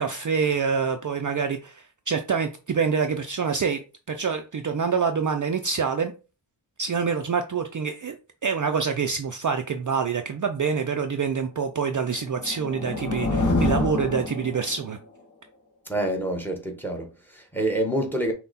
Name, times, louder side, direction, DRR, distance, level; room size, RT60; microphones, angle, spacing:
voice 1, 0.0-3.8 4.1-6.1 6.8-8.2 8.4-15.0, right 5 dB, 40° right, 0.5 m, -26 dB
sound 1, 12.1-15.0, left 2 dB, 40° left, 1.1 m, -27 dB
voice 2, 15.9-18.3, right 1 dB, 5° left, 1.1 m, -27 dB
5.6 x 2.3 x 4.1 m
wide cardioid pair, 125°, 47 cm